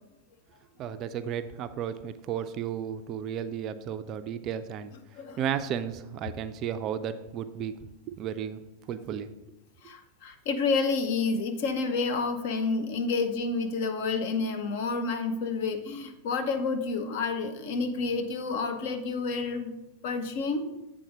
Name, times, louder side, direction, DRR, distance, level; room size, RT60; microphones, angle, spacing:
voice 1, 0.8-4.9 5.4-7.7 8.1-8.6 8.9-9.3, right 9 dB, 35° right, 10 dB, 0.3 m, -33 dB
voice 2, 9.8-19.7 20.0-20.6, left 4 dB, 50° left, 7 dB, 0.7 m, -29 dB
7.7 x 3.6 x 5.0 m, 0.98 s
figure-of-eight pair, 90°, 0 cm